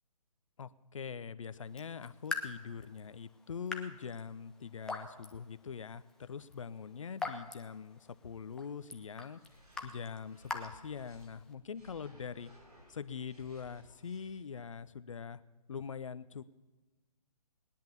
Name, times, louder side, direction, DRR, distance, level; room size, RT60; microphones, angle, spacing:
voice 1, 0.6-9.4 9.8-12.5 12.9-15.4 15.7-16.4, left 6 dB, 55° left, 15 dB, 0.7 m, -43 dB
Raindrop / Drip, 1.6-11.5, left 3 dB, 5° left, 0.6 m, -45 dB
sound 1, 9.3-11.3 11.7-14.4, equal, 75° right, 6.2 m, -60 dB
19.5 x 10.5 x 7.0 m, 1.2 s
figure-of-eight pair, 140°, 20 cm